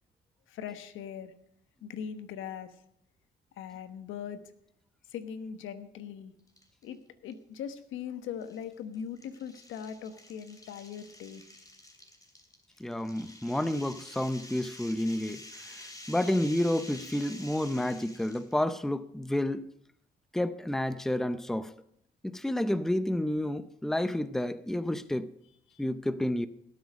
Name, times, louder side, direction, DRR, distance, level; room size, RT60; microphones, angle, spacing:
voice 1, 0.5-1.3 1.8-2.7 3.6-4.4 5.1-6.3 6.8-11.4 25.7-25.8, left 8 dB, 85° left, 1.2 m, -40 dB
sound 1, 6.5-6.9 7.3-7.4 8.4-18.5, left 1 dB, 20° left, 3.0 m, -49 dB
voice 2, 12.8-19.6 20.3-21.7 22.2-25.3 25.8-26.5, left 1 dB, ahead, 0.6 m, -30 dB
17.5 x 8.0 x 5.2 m
cardioid pair, 90°, 20 cm